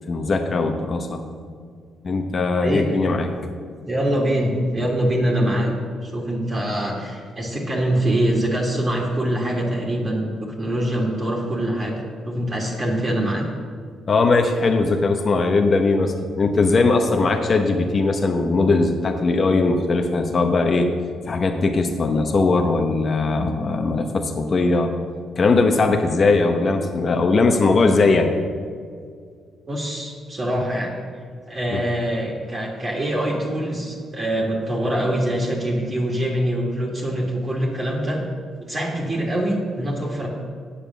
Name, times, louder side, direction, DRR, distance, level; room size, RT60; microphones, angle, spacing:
voice 1, 0.1-1.2 2.0-3.3 14.1-20.9 21.2-24.9 25.4-28.3 31.7-31.8, left 3 dB, 40° left, 4 dB, 0.8 m, -19 dB
voice 2, 2.6-2.9 3.9-5.7 6.0-12.0 12.2-13.4 29.7-30.9 31.5-38.2 38.7-40.3, right 1 dB, 30° right, -3 dB, 1.9 m, -24 dB
8.5 x 7.3 x 6.9 m, 2.1 s
cardioid pair, 90°, 0 cm